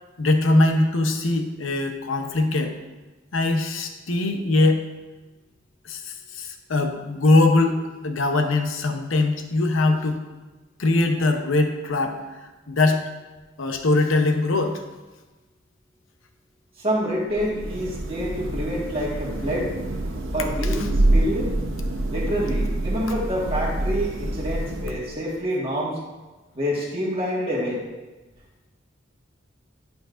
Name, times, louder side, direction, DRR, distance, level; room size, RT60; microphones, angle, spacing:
voice 1, 0.2-2.7 3.3-4.8 5.8-10.2 10.8-12.2 12.7-13.0 13.6-14.8, left 2 dB, 80° left, 5 dB, 0.8 m, -21 dB
voice 2, 16.8-19.7 20.3-21.5 22.1-26.0 26.5-27.8, equal, 30° right, -6 dB, 1.5 m, -27 dB
Thunder / Rain, 17.2-25.3, right 1 dB, 85° right, 0.9 m, -26 dB
11.0 x 5.3 x 2.5 m, 1.2 s
head